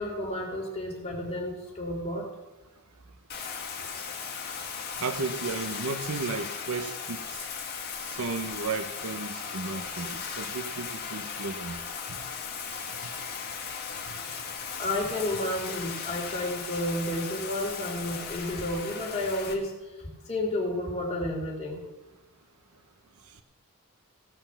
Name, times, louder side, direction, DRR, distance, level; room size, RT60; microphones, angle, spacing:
voice 1, 0.0-2.3 3.7-3.9 14.8-19.7 20.2-21.9, left 1 dB, 30° left, -2 dB, 3.0 m, -31 dB
Bathtub (filling or washing), 3.3-19.5, left 6 dB, 45° left, 1.8 m, -37 dB
voice 2, 5.0-7.5 8.0-11.8 12.1-12.2 12.7-12.9 14.1-14.2 23.3-23.4, right 4 dB, 80° right, 7 dB, 0.8 m, -34 dB
16.5 x 5.6 x 7.2 m, 1.1 s
head